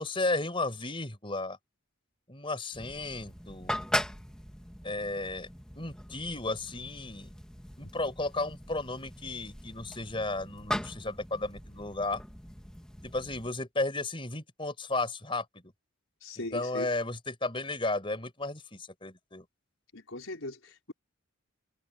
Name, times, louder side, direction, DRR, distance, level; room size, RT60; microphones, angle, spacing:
voice 1, 0.0-1.6 2.3-3.8 4.8-5.5 5.7-7.3 7.8-12.2 13.0-15.7 16.4-19.4, left 2 dB, 25° left, 4.8 m, -34 dB
sound 1, 2.7-13.5, left 1 dB, 5° left, 1.6 m, -39 dB
voice 2, 16.2-16.9 19.9-20.9, left 2 dB, 75° left, 4.8 m, -39 dB
head